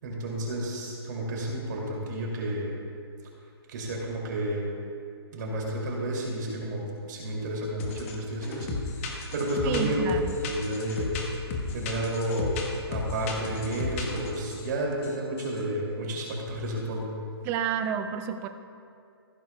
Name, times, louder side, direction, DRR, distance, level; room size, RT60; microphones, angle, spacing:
voice 1, 0.0-2.7 3.7-4.7 5.3-10.1 10.3-11.1 11.7-12.5 12.9-17.1, right 1 dB, 45° right, -2 dB, 2.6 m, -31 dB
sound 1, 7.8-8.1 8.4-14.7 15.0-15.6, left 4 dB, 30° left, 1.1 m, -34 dB
voice 2, 9.6-10.3 17.4-18.5, right 8 dB, 15° right, 8 dB, 0.4 m, -30 dB
15.5 x 11.0 x 2.3 m, 2.4 s
hypercardioid pair, 150°, 14 cm